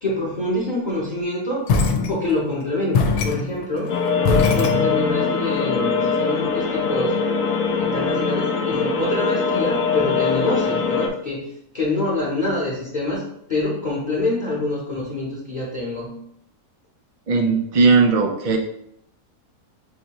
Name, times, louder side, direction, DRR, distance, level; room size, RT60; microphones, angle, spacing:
voice 1, 0.0-1.6 2.1-3.9 4.2-7.2 7.8-11.5 11.7-13.2 13.5-16.1, left 2 dB, 40° left, -5 dB, 0.8 m, -26 dB
sound 1, 1.7-2.6 2.9-5.3, left 4 dB, 85° left, 1.1 m, -22 dB
sound 2, 3.9-11.1, left 5 dB, 65° left, 0.9 m, -22 dB
voice 2, 17.3-18.6, right 4 dB, 70° right, 2 dB, 0.4 m, -17 dB
6.0 x 2.6 x 2.9 m, 0.73 s
omnidirectional pair, 1.6 m